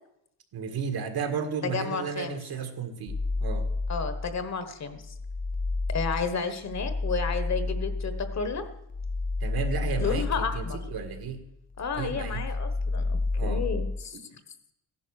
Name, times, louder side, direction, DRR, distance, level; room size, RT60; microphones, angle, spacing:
voice 1, 0.5-3.7 9.4-11.4 11.9-12.4 13.4-13.6, right 6 dB, 60° right, 6 dB, 1.9 m, -33 dB
voice 2, 1.6-2.4 3.9-5.1 5.9-8.7 10.0-10.8 11.8-14.4, left 5 dB, 40° left, 9 dB, 1.3 m, -32 dB
sound 1, 3.1-4.5 4.9-11.4 11.7-14.0, left 3 dB, 20° left, 0.4 m, -31 dB
15.5 x 11.0 x 6.5 m, 0.81 s
cardioid pair, 155°, 41 cm